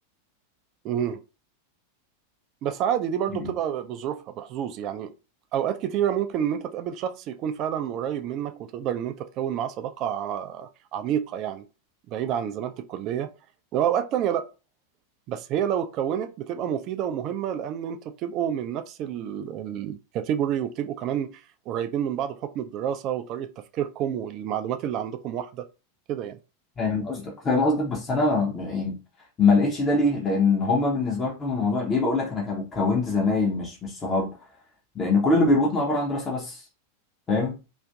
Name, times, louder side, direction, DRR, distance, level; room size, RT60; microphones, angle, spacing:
voice 1, 0.8-1.2 2.6-5.1 5.5-11.6 12.1-13.3 13.7-14.5 15.3-25.7 26.1-26.4, right 9 dB, 40° right, 0.3 m, -29 dB
voice 2, 26.8-29.0 29.4-34.3 35.0-36.6 37.3-37.6, left 3 dB, 20° left, 0.6 m, -23 dB
2.5 x 2.4 x 2.2 m
figure-of-eight pair, 90°, 0 cm